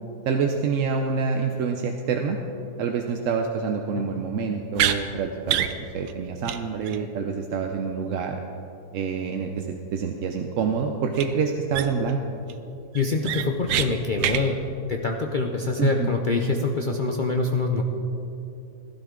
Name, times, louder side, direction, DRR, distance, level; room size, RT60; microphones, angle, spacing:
voice 1, 0.2-2.4 2.8-8.4 8.9-12.2 15.8-16.1, right 5 dB, 60° right, 3 dB, 0.9 m, -27 dB
sound 1, 4.7-5.0 5.5-5.7 6.1-6.2 6.5-6.6 6.9-7.0 11.1-11.3 11.7-12.1 12.5-12.6 12.9-13.9 14.2-14.4, right 11 dB, 80° right, 1.2 m, -25 dB
voice 2, 12.9-17.8, left 3 dB, 65° left, 2 dB, 0.5 m, -25 dB
16.0 x 11.5 x 3.7 m, 2.8 s
omnidirectional pair, 1.7 m